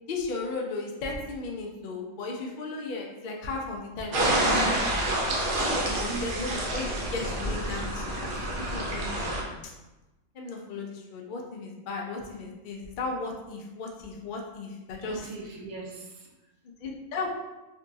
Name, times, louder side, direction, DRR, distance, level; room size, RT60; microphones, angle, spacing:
voice 1, 0.1-4.9 6.0-9.8 10.3-15.3 16.6-17.3, left 3 dB, 85° left, 0 dB, 0.4 m, -36 dB
sound 1, 4.1-9.4, right 1 dB, 55° right, 0.6 m, -28 dB
voice 2, 5.8-6.2 15.0-16.5, right 4 dB, 75° right, -1 dB, 1.1 m, -40 dB
3.7 x 2.3 x 2.6 m, 1.0 s
omnidirectional pair, 1.5 m